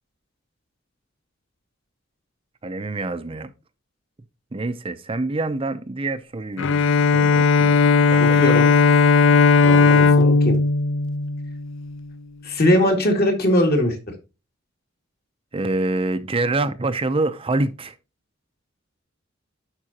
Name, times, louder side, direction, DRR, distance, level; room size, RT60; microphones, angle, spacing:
voice 1, 2.6-3.5 4.5-6.7 7.1-7.8 8.1-8.6 15.5-18.0, right 2 dB, 30° right, 0.6 m, -26 dB
Bowed string instrument, 6.6-12.0, left 4 dB, 70° left, 0.4 m, -16 dB
voice 2, 8.2-8.7 9.6-10.5 12.4-14.0, left 1 dB, 50° left, 2.3 m, -20 dB
11.0 x 4.9 x 2.8 m
head